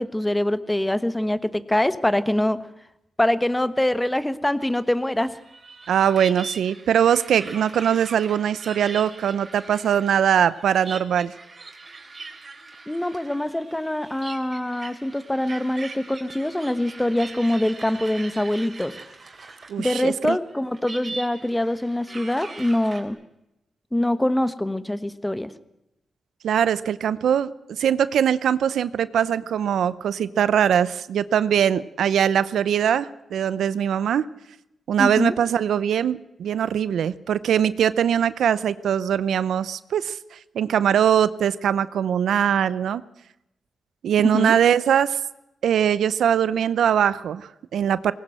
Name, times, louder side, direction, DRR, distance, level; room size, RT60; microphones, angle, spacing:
voice 1, 0.0-2.6 3.2-5.4 12.9-19.0 19.8-23.2 23.9-25.5 35.0-35.3 44.3-44.6, left 1 dB, 10° left, 13 dB, 1.2 m, -24 dB
sound 1, 4.6-20.1 20.3-23.0, right 3 dB, 40° right, 3.7 m, -41 dB
voice 2, 5.9-11.3 19.7-20.4 26.4-34.3 34.9-43.0 44.0-45.2 45.6-48.1, right 9 dB, 80° right, 16 dB, 0.6 m, -21 dB
19.0 x 18.0 x 7.8 m, 0.87 s
cardioid pair, 75°, 0 cm